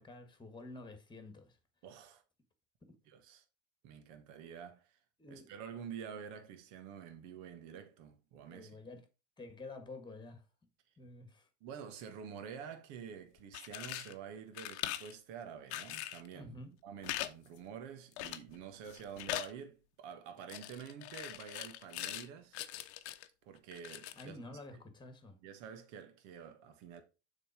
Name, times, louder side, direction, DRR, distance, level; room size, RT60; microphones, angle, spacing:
voice 1, 0.0-1.6 2.8-3.0 5.2-5.5 8.5-9.1 9.4-10.4 11.0-11.5 16.3-16.7 24.2-25.4, left 2 dB, 15° left, 1.8 m, -50 dB
voice 2, 1.8-2.2 3.1-3.4 3.8-5.0 5.3-8.8 11.6-16.6 16.8-22.6 23.4-24.4 25.4-27.0, right 7 dB, 55° right, 1.5 m, -48 dB
sound 1, 13.4-14.1 14.5-15.1 15.7-16.3 17.0-17.3 17.6-17.7 18.2-18.6 18.9-19.5 20.5-22.3 22.5-23.3 23.7-24.3, left 14 dB, 70° left, 0.9 m, -41 dB
6.7 x 4.0 x 5.1 m
hypercardioid pair, 90°, 35 cm